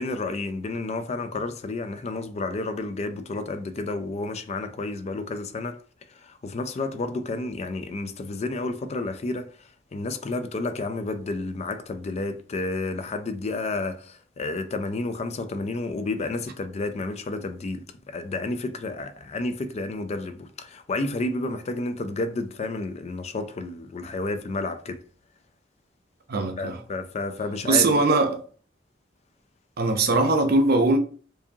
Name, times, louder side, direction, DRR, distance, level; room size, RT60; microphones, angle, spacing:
voice 1, 0.0-25.0 26.6-28.0, left 2 dB, 35° left, 0.4 m, -31 dB
voice 2, 26.3-26.8 27.6-28.4 29.8-31.0, right 3 dB, 55° right, 0.6 m, -21 dB
4.7 x 2.7 x 2.7 m
head